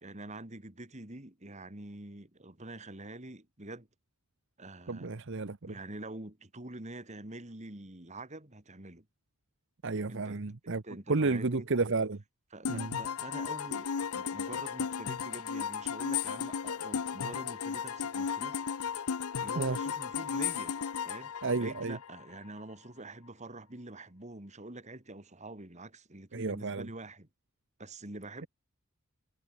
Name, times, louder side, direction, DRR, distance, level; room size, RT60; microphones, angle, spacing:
voice 1, 0.0-3.9 4.6-5.1 5.7-9.1 10.1-11.7 12.5-18.6 19.4-20.8 21.0-21.3 21.6-27.3 27.8-28.5, right 2 dB, 30° right, 2.5 m, -46 dB
voice 2, 4.9-5.8 9.8-10.8 11.1-12.2 12.7-12.9 19.6-19.8 21.4-22.0 26.3-26.9, right 3 dB, 55° right, 0.9 m, -31 dB
sound 1, 12.6-22.4, left 7 dB, 85° left, 0.7 m, -35 dB
head